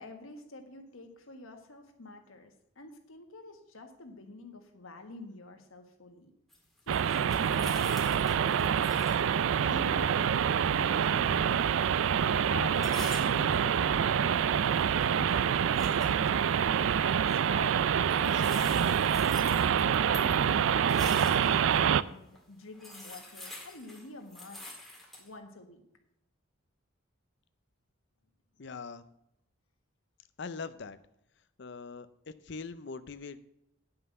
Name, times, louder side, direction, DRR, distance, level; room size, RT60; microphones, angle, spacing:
voice 1, 0.0-6.3 6.9-7.9 8.3-9.0 9.6-10.4 10.8-11.9 12.4-16.9 17.3-24.7 25.2-25.8, left 2 dB, 85° left, 5 dB, 1.6 m, -47 dB
sound 1, 6.5-9.2 9.5-9.6 12.7-13.6 14.5-15.1 15.6-16.1 18.1-21.8 22.3-22.4 22.7-25.3, left 1 dB, ahead, 1.8 m, -46 dB
sound 2, 6.9-22.0, right 8 dB, 70° right, 0.4 m, -26 dB
voice 2, 28.6-29.0 30.4-31.0 31.6-33.4, left 4 dB, 60° left, 13 dB, 0.6 m, -42 dB
9.7 x 5.8 x 6.6 m, 0.81 s
head